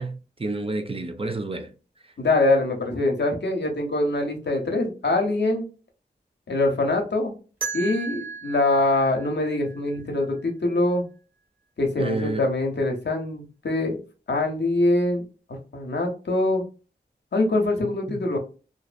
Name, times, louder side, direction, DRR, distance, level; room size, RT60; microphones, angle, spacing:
voice 1, 0.0-1.7 2.0-2.1 12.0-12.5 17.8-18.2, right 2 dB, 30° right, 0.5 m, -30 dB
voice 2, 2.2-5.6 6.5-7.3 7.7-11.0 11.8-14.0 14.3-15.2 15.7-16.6 17.3-18.4, left 2 dB, 70° left, 0.8 m, -23 dB
sound 1, 7.6-10.5, right 6 dB, 50° right, 1.2 m, -36 dB
2.6 x 2.0 x 2.5 m
cardioid pair, 40°, 18 cm